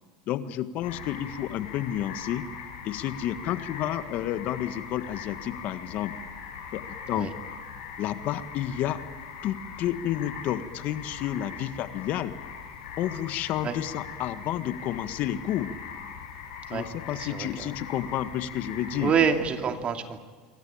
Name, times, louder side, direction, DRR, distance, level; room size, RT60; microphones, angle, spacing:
voice 1, 0.3-2.5 2.8-6.1 6.7-7.3 8.0-9.0 9.4-12.3 13.0-15.7 16.7-19.1, left 12 dB, 50° left, 11 dB, 1.6 m, -30 dB
sound 1, 0.8-19.4, left 6 dB, 80° left, 7.6 m, -41 dB
voice 2, 19.0-20.3, right 7 dB, 35° right, 6 dB, 2.6 m, -26 dB
27.0 x 23.0 x 8.8 m, 1.5 s
supercardioid pair, 110°, 3 cm